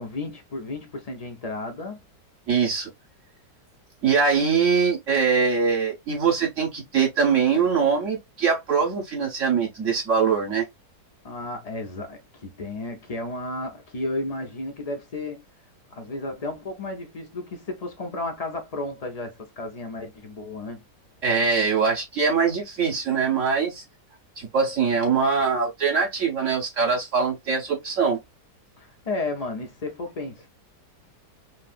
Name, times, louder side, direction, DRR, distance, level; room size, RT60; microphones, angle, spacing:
voice 1, 0.0-2.0 11.2-15.4 15.9-20.8 28.8-30.5, left 2 dB, 60° left, 0.4 m, -33 dB
voice 2, 2.5-2.9 4.0-10.7 21.2-23.8 24.4-28.2, right 5 dB, 50° right, 1.2 m, -22 dB
3.2 x 2.7 x 2.4 m
omnidirectional pair, 1.8 m